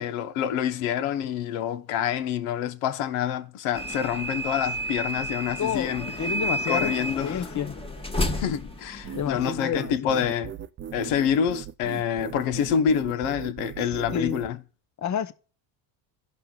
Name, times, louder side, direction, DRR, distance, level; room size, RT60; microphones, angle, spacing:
voice 1, 0.0-6.1 6.7-7.4 8.4-10.5 10.9-14.6, left 8 dB, 75° left, 1.0 m, -27 dB
sound 1, 3.7-9.6, equal, 10° left, 1.2 m, -31 dB
voice 2, 5.6-5.9 6.2-7.0 7.2-7.8 9.1-10.2 14.1-14.4 15.0-15.3, left 8 dB, 35° left, 0.8 m, -29 dB
sound 2, 9.0-14.5, right 9 dB, 25° right, 0.3 m, -38 dB
16.5 x 5.6 x 2.3 m
supercardioid pair, 95°, 50 cm